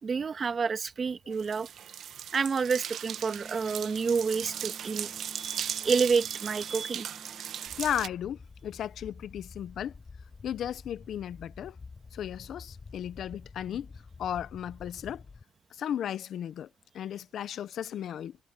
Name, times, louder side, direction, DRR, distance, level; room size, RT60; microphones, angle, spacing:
voice 1, 0.0-1.7 2.3-7.1, right 5 dB, 40° right, 1.5 m, -29 dB
sound 1, 1.3-8.1, right 9 dB, 70° right, 1.1 m, -38 dB
Wind instrument woodwind instrument, 3.0-7.9, left 1 dB, 5° left, 7.0 m, -53 dB
sound 2, 7.7-15.4, left 4 dB, 30° left, 5.0 m, -49 dB
voice 2, 7.8-9.9 10.4-11.8 12.1-13.9 14.2-15.2 15.7-16.7 16.9-18.4, left 10 dB, 70° left, 0.8 m, -35 dB
cardioid pair, 90°, 0 cm